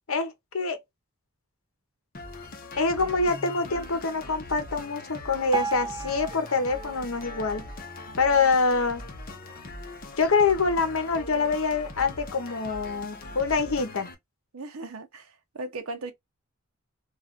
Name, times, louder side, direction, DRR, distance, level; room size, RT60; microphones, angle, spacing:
voice 1, 0.1-0.8 2.8-7.6 8.2-9.0 10.2-14.1, left 4 dB, 70° left, 0.9 m, -25 dB
sound 1, 2.1-14.1, left 2 dB, 45° left, 0.8 m, -41 dB
Piano, 5.5-8.6 9.1-9.3 9.6-9.7 10.4-10.5 11.1-11.2, right 5 dB, 20° right, 0.4 m, -36 dB
voice 2, 14.5-16.1, right 2 dB, 75° right, 0.7 m, -37 dB
3.2 x 2.4 x 2.4 m
head